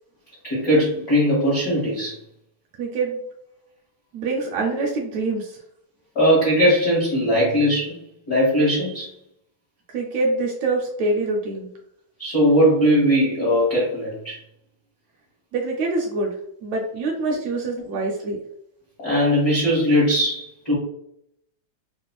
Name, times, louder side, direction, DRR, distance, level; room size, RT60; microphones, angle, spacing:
voice 1, 0.4-2.2 6.1-7.9 8.3-9.1 12.2-14.4 19.0-20.7, equal, 75° left, -7 dB, 0.8 m, -19 dB
voice 2, 2.8-3.2 4.1-5.6 9.9-11.7 15.5-16.3 16.6-18.4, right 3 dB, 80° right, -1 dB, 1.6 m, -25 dB
4.7 x 2.1 x 2.3 m, 0.73 s
omnidirectional pair, 3.4 m